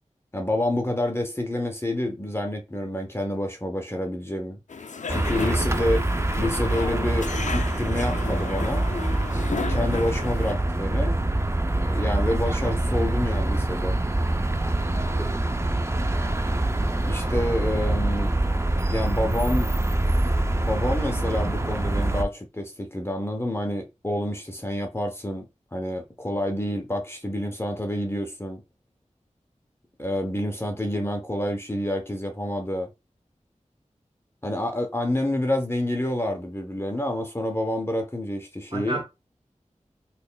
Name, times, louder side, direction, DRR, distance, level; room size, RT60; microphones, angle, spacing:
voice 1, 0.3-4.6 5.1-6.1 6.4-8.9 9.7-11.2 11.7-14.0 16.8-18.3 18.8-19.7 20.7-25.5 25.7-28.6 30.0-32.9 34.4-39.0, left 1 dB, 20° left, 0.8 m, -28 dB
sound 1, 4.7-10.5, left 4 dB, 70° left, 0.4 m, -34 dB
sound 2, 5.1-22.2, right 1 dB, 20° right, 0.5 m, -25 dB
voice 2, 14.9-15.4 38.7-39.0, right 2 dB, 40° right, 1.7 m, -33 dB
4.2 x 3.2 x 2.3 m
wide cardioid pair, 50°, 13 cm